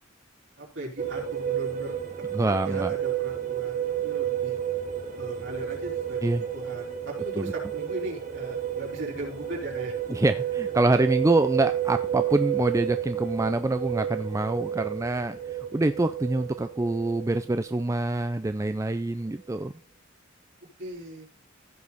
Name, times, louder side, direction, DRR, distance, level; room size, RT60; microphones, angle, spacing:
voice 1, 0.6-1.9 2.5-4.6 5.2-9.9 10.7-10.8 20.8-21.3, right 1 dB, 65° right, -3 dB, 4.5 m, -38 dB
sound 1, 1.0-18.2, right 10 dB, 40° right, 1.5 m, -31 dB
voice 2, 2.3-2.9 6.2-6.4 7.3-7.5 10.1-19.7, right 2 dB, 15° right, 9 dB, 0.4 m, -26 dB
15.5 x 5.2 x 4.1 m, 0.34 s
head